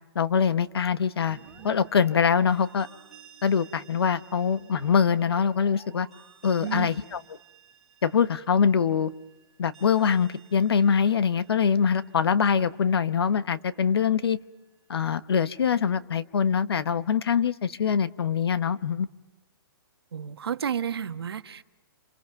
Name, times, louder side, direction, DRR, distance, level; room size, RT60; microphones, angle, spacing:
voice 1, 0.1-1.4 1.6-2.9 3.4-6.1 6.4-7.2 8.0-9.1 9.6-14.4 14.9-19.1, left 7 dB, 85° left, 13 dB, 1.2 m, -23 dB
sound 1, 1.3-12.8, right 6 dB, ahead, 4.7 m, -52 dB
voice 2, 20.1-21.6, right 8 dB, 85° right, 9 dB, 1.4 m, -31 dB
28.0 x 27.5 x 5.9 m, 1.1 s
hypercardioid pair, 175°, 13 cm